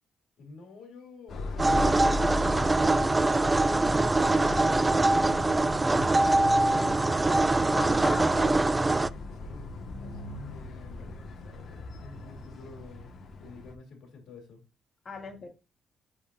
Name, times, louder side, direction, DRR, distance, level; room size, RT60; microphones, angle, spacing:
voice 1, 0.4-3.8 4.1-7.1 9.3-14.6, left 4 dB, 75° left, 2.7 m, -50 dB
sound 1, 1.3-13.7, left 2 dB, 60° left, 1.4 m, -37 dB
sound 2, 1.6-9.1, right 2 dB, 20° right, 0.3 m, -23 dB
voice 2, 4.3-4.6 7.6-8.7 15.1-15.5, left 4 dB, 40° left, 2.1 m, -38 dB
8.9 x 4.4 x 2.5 m
cardioid pair, 90°, 0 cm